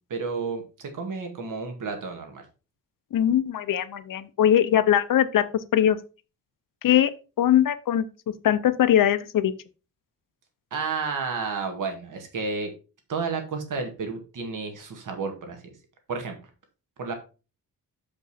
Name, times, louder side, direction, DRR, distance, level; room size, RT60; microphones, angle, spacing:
voice 1, 0.1-2.5 10.7-12.7 13.1-15.6 16.1-16.4 17.0-17.1, right 4 dB, 65° right, 5 dB, 1.9 m, -31 dB
voice 2, 3.1-6.0 6.8-7.1 7.4-8.1 8.4-9.5, left 10 dB, 70° left, 12 dB, 0.8 m, -21 dB
7.1 x 5.3 x 4.3 m, 0.32 s
wide cardioid pair, 145°, 34 cm